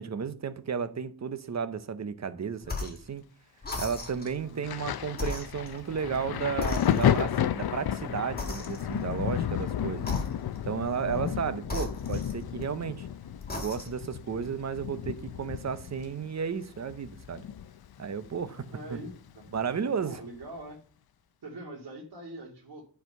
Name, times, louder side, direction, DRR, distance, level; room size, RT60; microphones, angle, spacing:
voice 1, 0.0-3.3 3.8-10.1 10.6-13.1 13.5-17.4 18.0-19.0 19.5-20.2, right 6 dB, 40° right, 0.7 m, -33 dB
sound 1, 2.6-3.1 3.6-4.4 5.1-6.2 6.6-7.4 8.4-9.1 10.0-10.7 11.6-12.8 13.4-14.1, left 3 dB, 20° left, 1.7 m, -37 dB
Thunder, 4.6-18.0 18.2-19.6 20.4-20.6, left 9 dB, 60° left, 0.6 m, -32 dB
voice 2, 11.5-11.8 18.6-19.1 19.8-20.8 21.4-22.8, right 1 dB, 60° right, 2.2 m, -43 dB
10.5 x 4.6 x 5.4 m
wide cardioid pair, 155°, 43 cm